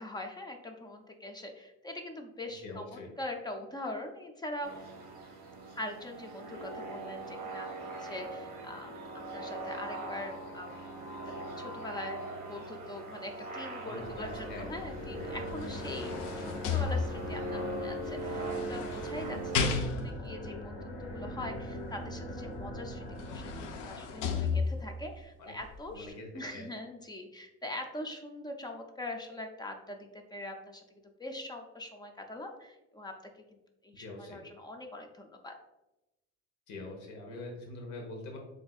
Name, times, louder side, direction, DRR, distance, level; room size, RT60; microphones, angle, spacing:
voice 1, 0.0-4.7 5.8-9.0 9.3-10.9 11.6-30.8 31.2-33.1 33.8-35.5, left 1 dB, 15° left, 4 dB, 0.4 m, -42 dB
voice 2, 2.6-3.1 13.9-14.7 25.4-25.5 25.9-26.7 34.0-34.4 36.7-38.4, left 2 dB, 70° left, 1 dB, 1.0 m, -43 dB
sound 1, 4.6-19.6, right 2 dB, 30° right, 1.3 m, -41 dB
sound 2, 13.9-24.4, left 1 dB, 50° left, 1.2 m, -43 dB
sound 3, 15.3-17.5 18.3-20.3 22.6-22.7 23.1-25.1 25.6-25.7, left 5 dB, 90° left, 0.6 m, -34 dB
7.6 x 2.7 x 2.3 m, 0.98 s
cardioid pair, 135°, 30 cm